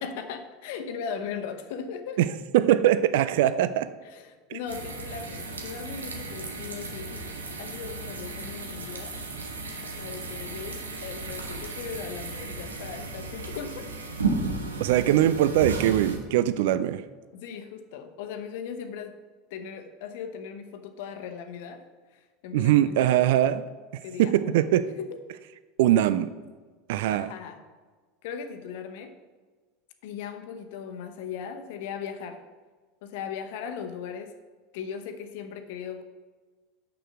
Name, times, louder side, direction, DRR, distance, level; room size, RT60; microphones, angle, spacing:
voice 1, 0.0-2.2 4.0-7.2 7.6-9.1 9.8-13.9 17.3-19.1 19.5-21.8 22.1-23.3 24.0-25.2 27.1-27.6 28.2-29.1 30.0-32.4 33.0-34.3 34.7-36.0, left 7 dB, 60° left, 7 dB, 0.9 m, -38 dB
voice 2, 2.5-3.9 4.5-4.6 14.8-17.0 22.5-23.6 24.2-24.9 25.8-26.3 26.9-27.3, right 12 dB, 65° right, 13 dB, 0.3 m, -22 dB
sound 1, 4.7-16.2, right 3 dB, 85° right, 1.1 m, -34 dB
6.4 x 6.1 x 6.3 m, 1.4 s
figure-of-eight pair, 80°, 0 cm